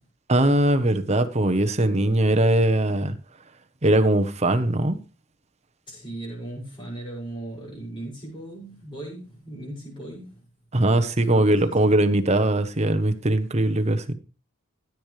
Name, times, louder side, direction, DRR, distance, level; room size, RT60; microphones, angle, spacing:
voice 1, 0.3-3.2 3.8-5.0 10.7-14.1, right 1 dB, 30° right, 1.0 m, -21 dB
voice 2, 5.9-10.4 11.3-12.0, right 1 dB, 20° left, 6.1 m, -38 dB
15.0 x 9.2 x 3.3 m
head